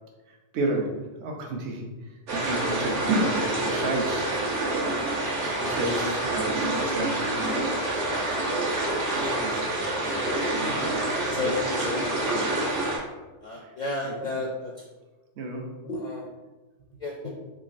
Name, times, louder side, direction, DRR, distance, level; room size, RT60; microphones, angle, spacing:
voice 1, 0.3-0.9 1.2-1.9 2.3-4.4 4.8-7.3 9.1-9.7 11.3-11.5 13.6-13.7 14.0-14.5 15.4-15.7, right 2 dB, 75° right, 1 dB, 0.9 m, -32 dB
sound 1, 2.3-13.0, right 2 dB, 90° right, 1.2 m, -27 dB
voice 2, 11.3-12.0 13.4-14.7 15.8-16.2 17.0-17.3, left 2 dB, 60° left, -2 dB, 0.5 m, -32 dB
3.6 x 3.0 x 2.5 m, 1.2 s
omnidirectional pair, 1.2 m